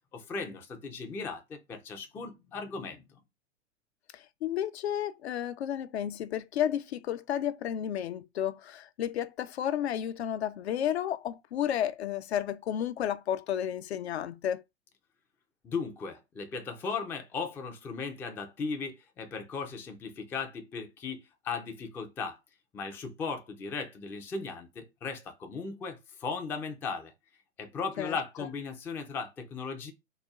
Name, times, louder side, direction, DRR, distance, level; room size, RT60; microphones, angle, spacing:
voice 1, 0.1-3.0 15.6-22.4 22.7-27.1 27.6-29.9, left 5 dB, 5° left, 0.3 m, -37 dB
voice 2, 4.1-14.6 28.0-28.2, left 10 dB, 65° left, 0.5 m, -32 dB
4.2 x 2.2 x 3.5 m
figure-of-eight pair, 105°, 35 cm